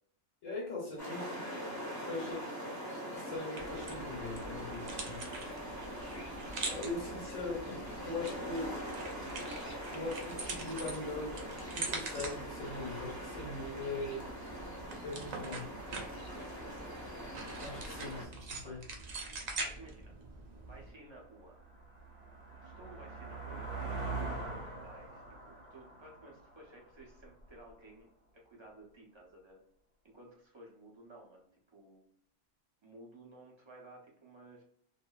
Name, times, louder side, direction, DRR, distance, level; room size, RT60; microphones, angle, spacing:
voice 1, 0.4-1.4 2.0-2.4 3.1-5.2 6.7-8.8 9.9-11.4 11.7-14.2 15.0-15.6 17.6-18.8, left 2 dB, 70° left, -2 dB, 1.1 m, -41 dB
sound 1, 1.0-18.2, equal, 15° left, 0.6 m, -43 dB
sound 2, 3.6-20.9, right 3 dB, 80° right, 0.3 m, -44 dB
voice 2, 16.3-16.9 18.6-18.8 19.6-20.2 20.6-21.6 22.6-28.1 28.4-29.6 30.0-32.0 32.8-34.6, right 2 dB, 30° right, -2 dB, 0.6 m, -55 dB
sound 3, 20.3-20.4 20.9-27.5, right 3 dB, 50° right, 1.1 m, -43 dB
2.6 x 2.6 x 2.3 m, 0.65 s
omnidirectional pair, 1.5 m